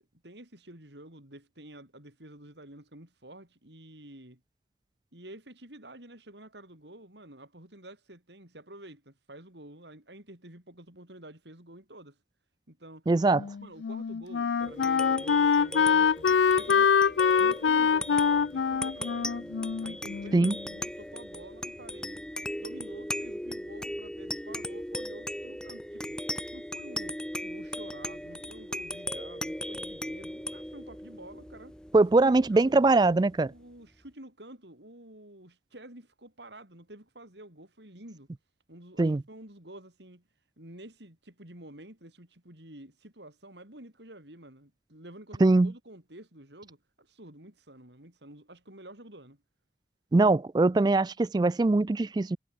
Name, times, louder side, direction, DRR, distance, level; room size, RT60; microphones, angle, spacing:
voice 1, 0.0-4.4 5.1-12.2 12.7-13.1 13.6-22.2 22.6-26.2 26.5-31.8 32.2-32.9 33.5-38.3 38.7-40.2 40.6-49.4, right 1 dB, 75° right, 6.7 m, -49 dB
voice 2, 13.1-13.4 20.3-20.5 31.9-33.5 39.0-39.2 45.4-45.7 50.1-52.4, right 2 dB, 20° right, 0.3 m, -22 dB
Wind instrument woodwind instrument, 13.3-20.6, left 6 dB, 80° left, 0.4 m, -25 dB
sound 1, 14.6-33.5, left 1 dB, 5° left, 1.8 m, -38 dB
head